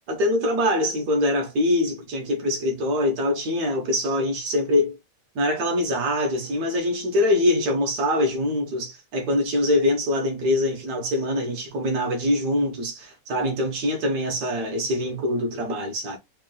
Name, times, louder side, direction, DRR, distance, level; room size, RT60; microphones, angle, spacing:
voice 1, 0.1-5.0 5.3-16.2, left 1 dB, 70° right, 1.6 m, -24 dB
3.8 x 2.3 x 3.8 m
omnidirectional pair, 1.9 m